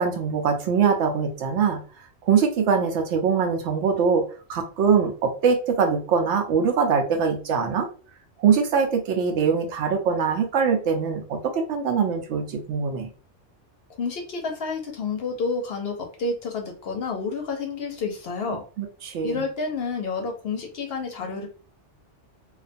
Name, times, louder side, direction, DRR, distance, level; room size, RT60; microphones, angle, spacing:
voice 1, 0.0-1.8 2.2-4.2 4.5-7.9 8.4-13.1 18.8-19.4, right 6 dB, 75° right, 4 dB, 0.9 m, -22 dB
voice 2, 14.0-18.6 19.2-21.5, left 4 dB, 60° left, 3 dB, 0.7 m, -29 dB
2.4 x 2.2 x 2.5 m, 0.38 s
omnidirectional pair, 1.2 m